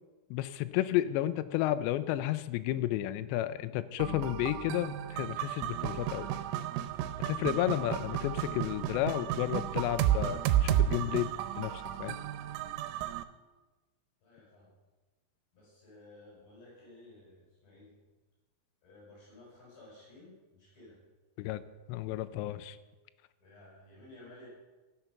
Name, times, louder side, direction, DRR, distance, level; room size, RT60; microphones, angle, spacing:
voice 1, 0.3-6.3 7.3-11.3 11.6-12.2 21.4-21.6 21.9-22.8, left 14 dB, 90° left, 11 dB, 2.5 m, -32 dB
sound 1, 4.0-13.2, right 11 dB, 85° right, 3.1 m, -32 dB
voice 2, 14.2-14.7 15.5-18.0 18.8-21.0 23.4-24.5, left 2 dB, 50° left, -5 dB, 6.0 m, -55 dB
17.0 x 6.7 x 5.9 m, 1.2 s
omnidirectional pair, 5.6 m